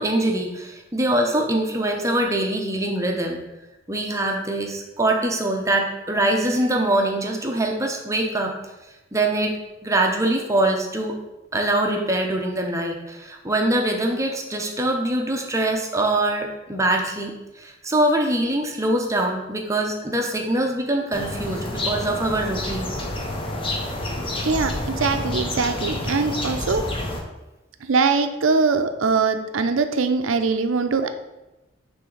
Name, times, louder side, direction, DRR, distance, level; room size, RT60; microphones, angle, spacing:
voice 1, 0.0-3.4 3.9-8.5 9.1-9.5 9.8-11.2 11.5-23.0, right 1 dB, 15° right, 2 dB, 0.7 m, -23 dB
sound 1, 21.1-27.2, left 1 dB, 25° left, 0.8 m, -28 dB
voice 2, 25.0-26.9 27.9-31.1, right 4 dB, 85° right, 8 dB, 0.6 m, -22 dB
9.0 x 3.4 x 3.9 m, 1.0 s
head